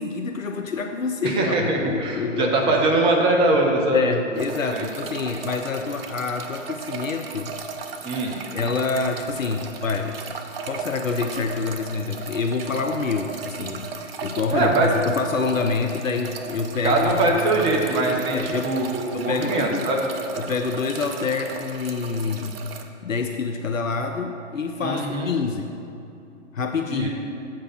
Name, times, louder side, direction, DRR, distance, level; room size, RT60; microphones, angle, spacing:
voice 1, 0.0-2.8 3.6-7.6 8.5-10.3 10.7-17.4 18.3-19.9 20.4-22.6 23.0-25.8 26.5-27.1, left 4 dB, 90° left, 4 dB, 0.6 m, -27 dB
voice 2, 1.2-4.4 4.7-4.9 8.0-8.4 14.5-14.9 16.8-20.0 24.8-25.3 26.9-27.1, right 2 dB, 15° right, 1 dB, 0.7 m, -22 dB
sound 1, 4.4-22.8, right 5 dB, 50° right, 0.7 m, -36 dB
7.4 x 4.8 x 5.9 m, 2.8 s
figure-of-eight pair, 120°, 38 cm